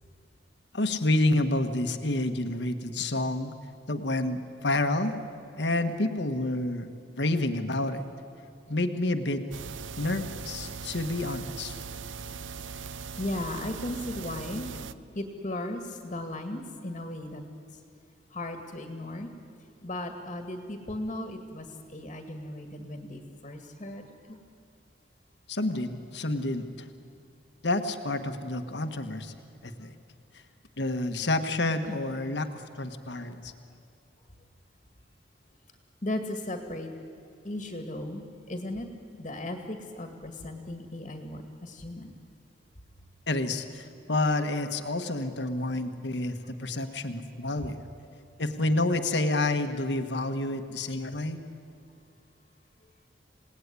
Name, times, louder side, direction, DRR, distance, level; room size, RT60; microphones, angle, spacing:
voice 1, 0.7-3.5 3.9-5.2 5.6-6.9 7.1-8.0 8.7-9.4 10.0-11.7 25.5-26.9 27.6-29.3 29.6-30.0 30.8-33.5 43.3-47.8 48.4-51.4, left 2 dB, 65° left, 7 dB, 1.5 m, -29 dB
sound 1, 9.5-14.9, right 5 dB, 85° right, 0.7 m, -40 dB
voice 2, 13.2-14.7 15.2-17.4 18.3-19.3 19.8-21.7 21.9-24.4 31.9-32.0 36.0-36.9 37.4-38.9 39.1-42.1 46.8-46.9 47.3-47.4, left 1 dB, 35° left, 5 dB, 2.0 m, -36 dB
28.0 x 18.0 x 9.8 m, 2.4 s
head